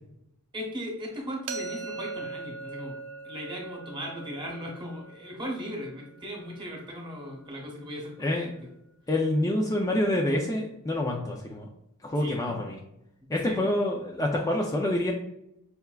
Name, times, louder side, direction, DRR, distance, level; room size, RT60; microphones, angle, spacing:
voice 1, 0.5-3.0 3.2-8.5 12.2-12.6 13.4-13.6, equal, 20° right, -1 dB, 1.1 m, -38 dB
sound 1, 1.5-7.3, right 4 dB, 70° right, 0.6 m, -41 dB
voice 2, 8.2-8.5 9.1-11.7 12.0-12.8 13.3-15.1, left 1 dB, 15° left, -1 dB, 0.4 m, -27 dB
5.6 x 3.4 x 2.3 m, 0.80 s
head